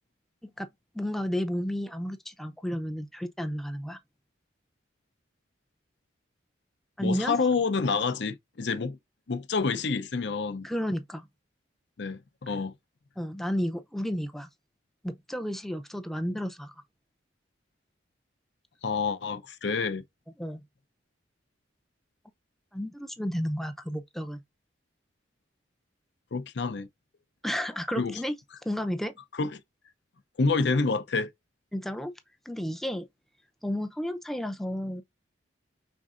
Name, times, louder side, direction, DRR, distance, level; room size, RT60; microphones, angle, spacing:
voice 1, 0.9-4.0 7.0-7.4 10.6-11.3 13.2-14.5 15.0-16.7 20.4-20.6 22.7-24.4 27.4-28.3 28.6-29.1 31.7-32.1 32.5-33.1 33.6-35.0, equal, ahead, 0.5 m, -32 dB
voice 2, 7.0-9.0 9.3-10.7 12.0-12.7 18.8-20.0 26.3-26.9 28.0-28.2 29.4-29.6 30.4-31.3, left 4 dB, 60° left, 0.6 m, -28 dB
5.3 x 3.6 x 2.4 m
head